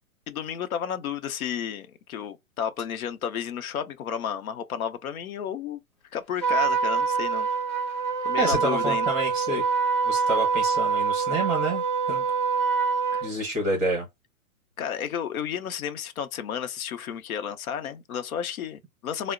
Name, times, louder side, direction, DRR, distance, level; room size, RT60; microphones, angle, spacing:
voice 1, 0.3-5.8 6.1-7.5 8.2-9.1 13.1-13.3 14.8-19.3, left 8 dB, 75° left, 0.6 m, -32 dB
Trumpet, 6.4-13.3, right 5 dB, 20° left, 0.4 m, -25 dB
voice 2, 8.4-9.6 10.0-12.2 13.2-14.1, right 1 dB, 15° right, 0.7 m, -28 dB
3.7 x 2.0 x 2.3 m
hypercardioid pair, 165°, 43 cm